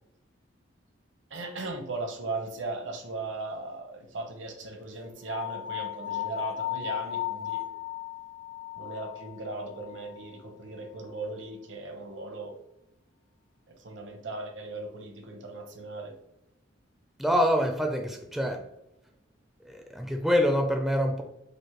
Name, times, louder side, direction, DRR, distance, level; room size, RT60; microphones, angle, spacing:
voice 1, 1.3-7.6 8.7-12.6 13.7-16.1, right 3 dB, 70° right, 3 dB, 0.9 m, -38 dB
sound 1, 5.3-10.4, left 13 dB, 65° left, 1.1 m, -36 dB
voice 2, 17.2-18.6 19.7-21.2, equal, ahead, 3 dB, 0.4 m, -25 dB
5.2 x 2.1 x 4.4 m, 0.87 s
head